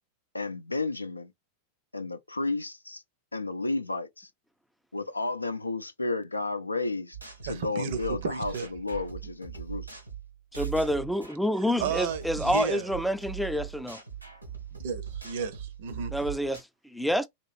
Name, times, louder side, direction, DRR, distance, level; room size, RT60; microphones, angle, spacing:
voice 1, 0.3-1.3 1.9-3.0 3.3-4.3 4.9-7.2 7.4-9.9, left 3 dB, 85° left, 0.4 m, -32 dB
sound 1, 7.1-11.4 11.7-16.6, right 8 dB, 90° right, 1.0 m, -40 dB
voice 2, 7.4-8.7 11.8-12.9 14.8-16.1, right 6 dB, 55° right, 0.6 m, -33 dB
voice 3, 10.5-14.0 16.1-17.3, equal, ahead, 0.4 m, -28 dB
2.9 x 2.9 x 2.5 m
figure-of-eight pair, 90°, 0 cm